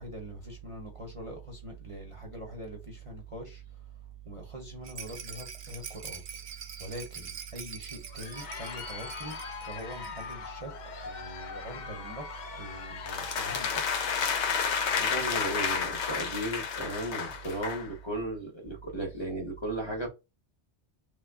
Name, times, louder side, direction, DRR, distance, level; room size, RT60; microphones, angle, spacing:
voice 1, 0.0-6.2 6.8-10.7 11.0-14.2, right 2 dB, 35° right, 0.7 m, -43 dB
Rattle, 4.8-10.5 10.8-10.9 11.2-11.3, right 7 dB, 65° right, 0.8 m, -44 dB
Crowd, 7.9-14.5, left 5 dB, 55° left, 0.5 m, -42 dB
sound 1, 13.1-17.9, left 6 dB, 80° left, 0.9 m, -30 dB
voice 2, 14.9-20.1, right 1 dB, 25° left, 0.9 m, -35 dB
3.2 x 2.3 x 3.5 m
omnidirectional pair, 1.2 m